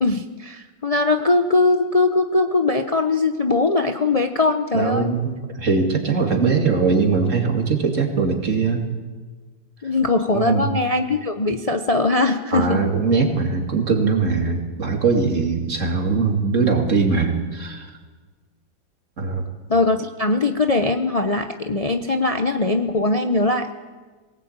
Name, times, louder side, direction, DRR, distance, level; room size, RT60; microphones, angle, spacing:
voice 1, 0.0-5.1 9.8-12.8 19.7-23.7, left 3 dB, 55° left, 6 dB, 0.4 m, -20 dB
voice 2, 4.7-8.8 10.3-10.7 12.5-17.9 19.2-19.4, right 4 dB, 40° right, 2 dB, 2.8 m, -21 dB
21.5 x 18.5 x 8.9 m, 1.4 s
omnidirectional pair, 2.1 m